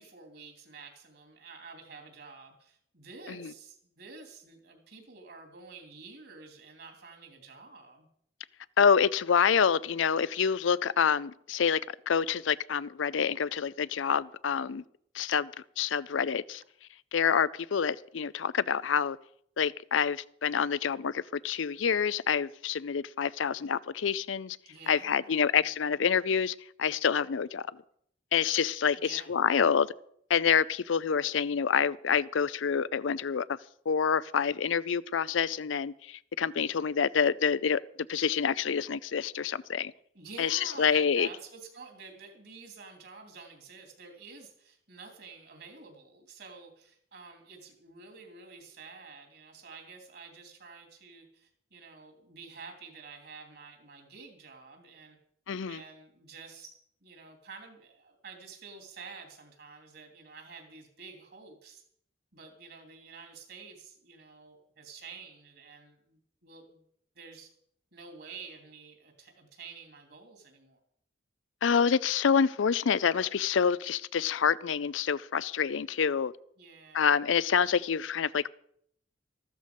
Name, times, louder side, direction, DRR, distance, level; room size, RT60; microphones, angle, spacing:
voice 1, 0.0-8.1 24.6-25.7 28.5-28.6 29.0-29.3 31.1-31.6 40.1-55.2 55.6-61.8 62.3-66.9 67.1-67.5 67.9-70.8 76.6-77.3, right 4 dB, 55° right, 3.1 m, -49 dB
voice 2, 8.8-11.8 12.1-14.8 15.1-15.5 15.8-16.6 17.1-19.2 19.6-24.6 24.9-27.8 28.3-29.9 30.3-33.6 33.9-37.8 38.1-39.9 40.4-41.3 55.5-55.8 71.6-76.3 76.9-78.5, left 7 dB, 80° left, 0.5 m, -27 dB
14.0 x 13.0 x 5.3 m
head